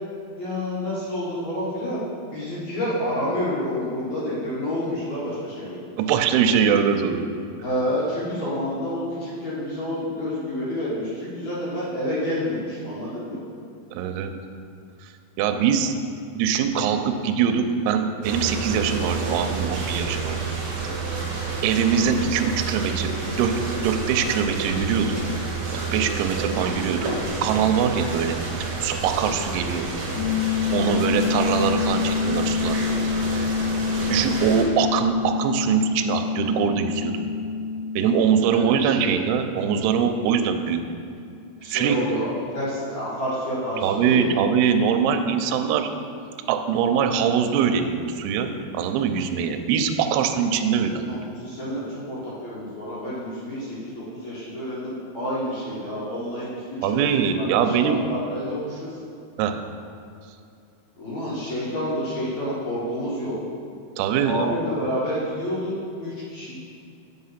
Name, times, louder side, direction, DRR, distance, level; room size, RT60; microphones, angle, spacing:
voice 1, 0.4-2.0 2.3-5.9 7.6-13.4 30.7-30.9 38.4-39.2 41.6-44.4 51.0-57.0 57.4-58.9 61.0-63.4 64.2-66.5, equal, 55° left, -8 dB, 2.1 m, -29 dB
voice 2, 6.0-7.2 13.9-14.3 15.4-15.9 16.3-20.4 21.6-23.1 23.4-23.5 23.8-25.2 25.7-27.1 27.4-29.9 30.7-32.9 34.1-37.1 38.0-40.8 41.7-42.0 43.8-45.9 46.5-51.1 56.8-58.0 59.4-59.5 64.0-64.6, right 7 dB, 80° right, 6 dB, 2.5 m, -22 dB
sound 1, 18.2-34.6, right 3 dB, 65° right, 1.8 m, -30 dB
sound 2, 30.2-40.9, left 5 dB, 75° left, 2.1 m, -27 dB
7.9 x 4.8 x 5.7 m, 2.4 s
omnidirectional pair, 4.9 m